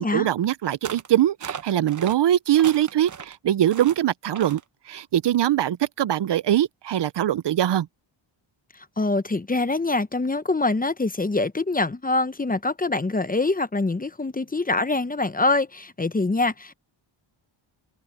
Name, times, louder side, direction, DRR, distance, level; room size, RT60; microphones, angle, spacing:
voice 1, 0.0-4.6 4.9-7.9, right 11 dB, 60° right, 0.7 m, -22 dB
sound 1, 0.8-1.1 1.4-2.2 2.5-3.3 3.7-4.0 4.3-4.6, right 7 dB, 40° right, 1.0 m, -36 dB
voice 2, 9.0-16.7, left 3 dB, 20° left, 0.9 m, -24 dB
cardioid pair, 95°, 48 cm